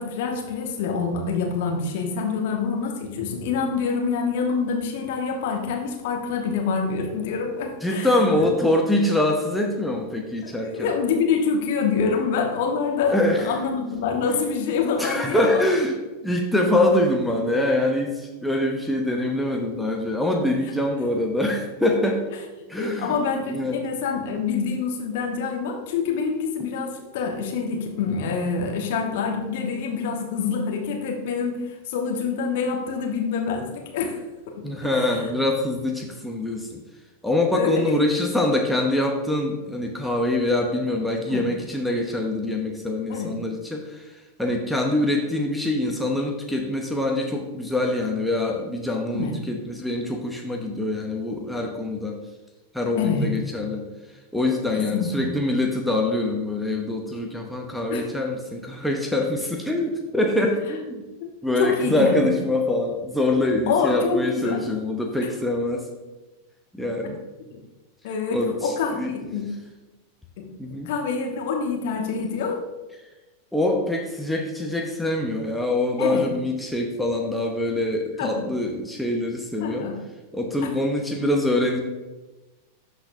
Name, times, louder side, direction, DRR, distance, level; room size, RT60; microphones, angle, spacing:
voice 1, 0.0-8.1 8.3-8.5 10.4-15.6 22.8-34.2 34.5-35.1 37.5-38.0 41.3-41.5 43.1-43.3 49.1-49.4 53.0-53.3 54.7-55.3 57.9-58.0 61.2-61.3 61.6-62.3 63.7-64.6 67.5-67.6 68.0-69.5 70.4-72.6 76.0-76.3 78.2-78.5 79.6-80.0 80.6-80.7, left 5 dB, 50° left, 1 dB, 1.2 m, -26 dB
voice 2, 7.8-10.9 13.1-13.5 15.0-16.0 16.2-22.2 22.7-23.2 23.5-23.8 34.6-36.8 37.2-44.1 44.4-52.2 52.7-53.8 54.3-61.0 61.4-65.8 66.7-67.2 68.3-69.1 70.6-70.9 73.5-79.9 80.3-81.8, left 1 dB, ahead, 0 dB, 0.8 m, -24 dB
12.0 x 4.0 x 2.6 m, 1.1 s
figure-of-eight pair, 90°, 0 cm